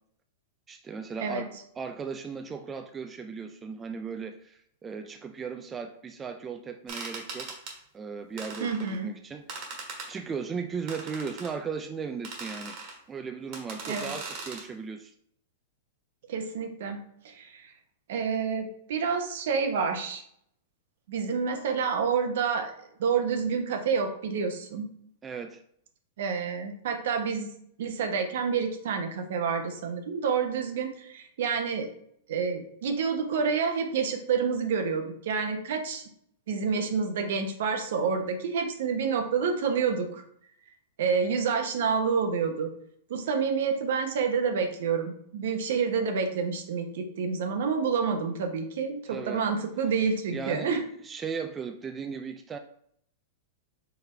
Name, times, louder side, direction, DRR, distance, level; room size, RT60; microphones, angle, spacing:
voice 1, 0.7-1.5 1.8-7.6 7.9-9.8 10.1-12.8 13.1-15.1 25.2-25.6 49.1-49.4 50.3-50.7 51.0-52.6, right 5 dB, 20° right, 6 dB, 0.3 m, -37 dB
sound 1, 6.9-7.8 8.4-9.0 9.5-10.1 10.9-11.5 12.2-13.0 13.5-14.7, right 4 dB, 50° right, 1.5 m, -39 dB
voice 2, 8.6-9.1 13.9-14.1 16.3-17.0 17.2-17.7 18.1-20.2 21.1-22.7 23.0-24.9 26.2-27.5 27.8-31.9 32.3-36.0 36.5-40.2 41.0-42.7 43.1-50.8, right 5 dB, 70° right, 5 dB, 0.9 m, -28 dB
4.8 x 3.4 x 3.2 m, 0.68 s
hypercardioid pair, 130°, 0 cm